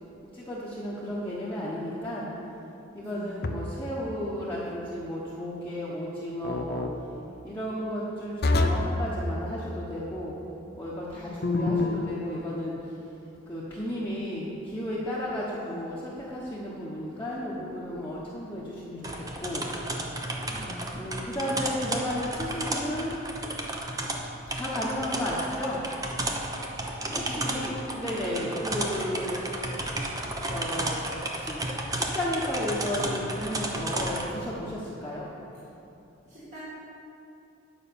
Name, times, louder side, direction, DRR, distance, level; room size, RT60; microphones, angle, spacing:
voice 1, 0.3-2.3 2.9-6.8 7.4-10.4 10.8-12.7 13.5-19.7 20.9-23.2 24.5-25.8 27.1-31.1 31.4-31.6 31.9-35.3, left 1 dB, 10° left, -8 dB, 1.2 m, -33 dB
voice 2, 3.0-3.3 11.1-11.5 15.5-15.8 20.5-21.0 27.0-28.3 36.3-36.6, equal, 40° right, -12 dB, 2.2 m, -42 dB
sound 1, 3.4-3.9 6.4-6.9 8.4-9.0 11.4-12.1, left 2 dB, 55° left, 0.7 m, -26 dB
sound 2, 19.0-34.3, right 1 dB, 20° right, 0.9 m, -33 dB
9.9 x 5.5 x 6.8 m, 2.8 s
head